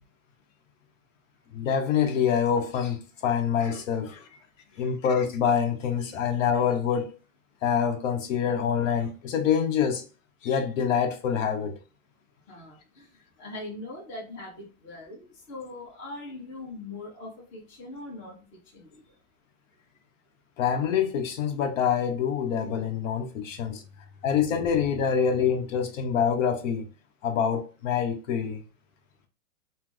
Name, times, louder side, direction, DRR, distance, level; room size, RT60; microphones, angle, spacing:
voice 1, 1.5-4.2 4.8-7.1 7.6-10.0 10.4-11.8 20.6-23.8 24.2-26.9 27.2-28.6, left 7 dB, 60° left, 0.9 m, -26 dB
voice 2, 12.5-13.1 13.4-18.5 18.7-19.0, left 2 dB, 25° left, 1.1 m, -41 dB
2.8 x 2.1 x 3.7 m
hypercardioid pair, 135°, 43 cm